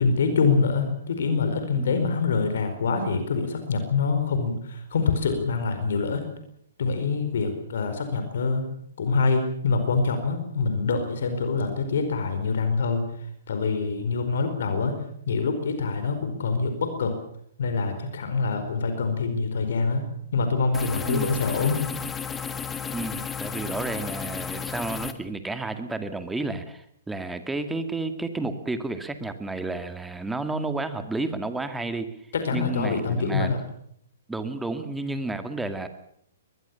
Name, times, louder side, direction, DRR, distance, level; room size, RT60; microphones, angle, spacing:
voice 1, 0.0-6.2 6.8-8.7 9.0-13.0 13.5-14.9 15.3-17.1 17.6-20.1 20.3-21.8 32.3-33.6, left 4 dB, 65° left, 8 dB, 4.6 m, -25 dB
sound 1, 20.7-25.1, left 7 dB, 10° left, 1.6 m, -33 dB
voice 2, 22.9-32.1 32.5-33.5 34.3-35.9, right 2 dB, 5° right, 8 dB, 2.1 m, -31 dB
22.5 x 20.5 x 7.1 m, 0.68 s
figure-of-eight pair, 120°, 0 cm